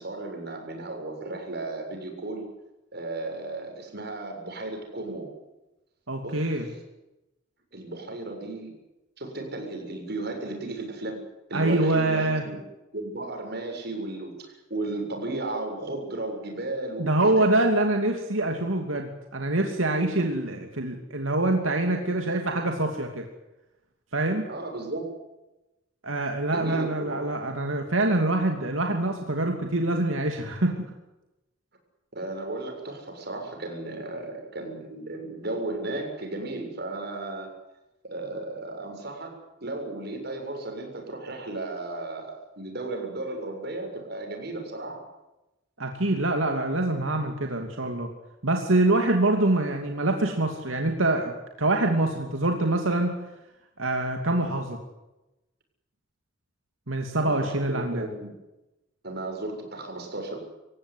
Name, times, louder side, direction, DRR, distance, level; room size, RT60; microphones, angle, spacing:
voice 1, 0.0-2.5 2.9-5.3 6.2-6.5 7.7-8.7 9.2-11.2 11.5-12.6 12.9-17.4 24.5-25.0 26.5-27.2 32.1-37.5 38.0-45.0 57.2-58.3 59.0-60.4, right 2 dB, 55° right, 3 dB, 7.3 m, -34 dB
voice 2, 6.1-6.7 11.5-12.4 17.0-23.3 24.1-24.5 26.0-30.9 45.8-48.1 48.4-51.3 51.6-53.1 53.8-54.8 56.9-58.1, right 2 dB, 90° right, 3 dB, 2.8 m, -25 dB
26.5 x 16.0 x 9.8 m, 0.98 s
head